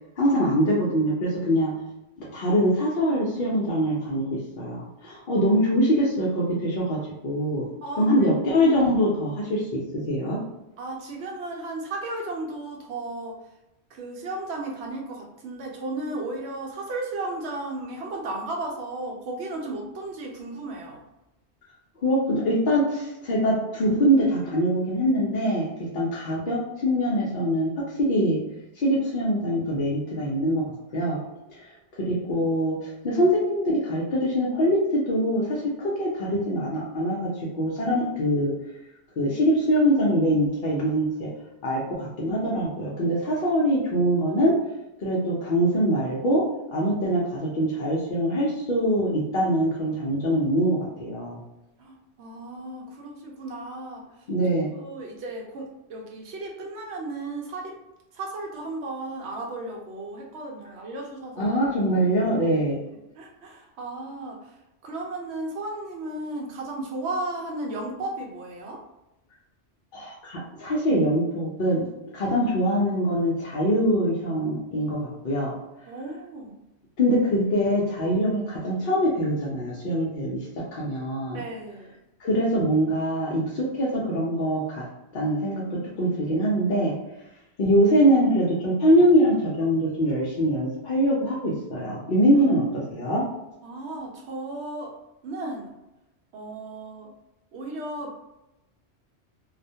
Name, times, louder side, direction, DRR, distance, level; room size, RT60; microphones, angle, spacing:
voice 1, 0.2-1.7 2.3-4.3 4.6-7.7 8.0-9.8 10.1-10.4 22.0-25.7 25.9-27.7 28.0-28.4 28.8-30.6 30.9-31.2 31.5-31.7 32.0-37.3 37.5-38.5 39.2-41.3 41.6-44.5 45.0-46.4 46.7-51.4 54.3-54.7 61.4-62.8 69.9-71.8 72.1-75.5 77.0-81.4 82.2-84.8 85.1-86.9 87.6-93.2, equal, 55° left, -6 dB, 0.7 m, -23 dB
voice 2, 7.8-8.3 10.8-13.4 13.9-21.0 51.8-54.0 54.8-57.8 58.1-61.5 63.2-64.5 64.8-68.8 75.9-76.6 81.3-81.9 93.6-94.9 95.2-95.7 96.3-97.1 97.5-98.2, right 2 dB, 75° right, 0 dB, 0.9 m, -34 dB
2.4 x 2.1 x 2.6 m, 0.93 s
omnidirectional pair, 1.1 m